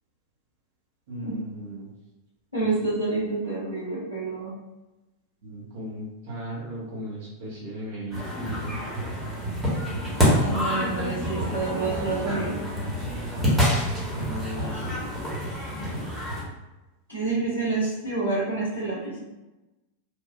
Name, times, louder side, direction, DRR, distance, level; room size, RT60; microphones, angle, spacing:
voice 1, 1.1-1.9 2.6-2.7 5.4-8.8 14.1-15.0, equal, 55° right, -6 dB, 0.9 m, -36 dB
voice 2, 2.5-4.5 10.4-12.6 14.6-14.9 17.1-19.2, right 3 dB, 90° right, -13 dB, 1.2 m, -28 dB
sound 1, 8.1-16.4, equal, 10° right, 1.0 m, -27 dB
3.0 x 2.3 x 2.3 m, 1.1 s
figure-of-eight pair, 90°, 0 cm